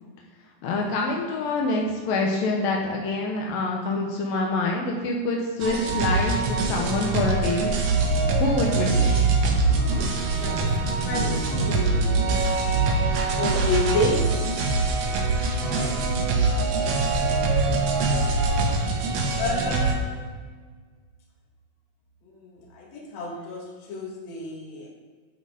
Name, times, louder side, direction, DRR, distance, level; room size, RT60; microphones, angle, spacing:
voice 1, 0.6-7.7 8.4-9.2, left 2 dB, 80° left, 0 dB, 2.7 m, -26 dB
sound 1, 5.6-19.9, right 3 dB, 65° right, 1.7 m, -23 dB
voice 2, 9.7-12.3 13.4-14.3 15.6-16.0 19.3-20.3 22.2-24.9, left 2 dB, 55° left, -2 dB, 2.6 m, -30 dB
11.5 x 4.5 x 4.9 m, 1.5 s
omnidirectional pair, 4.0 m